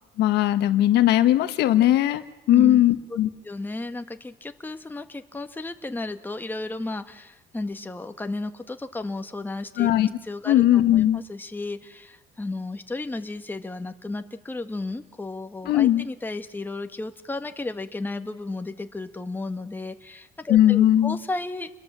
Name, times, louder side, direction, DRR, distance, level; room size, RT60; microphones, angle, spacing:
voice 1, 0.2-3.3 9.8-10.1 10.5-11.2 15.7-16.1 20.5-21.2, left 13 dB, 80° left, 10 dB, 1.6 m, -19 dB
voice 2, 2.5-2.8 3.4-9.9 10.2-21.7, left 2 dB, 10° left, 7 dB, 1.6 m, -33 dB
29.0 x 22.0 x 7.5 m, 0.97 s
cardioid pair, 110°, 17 cm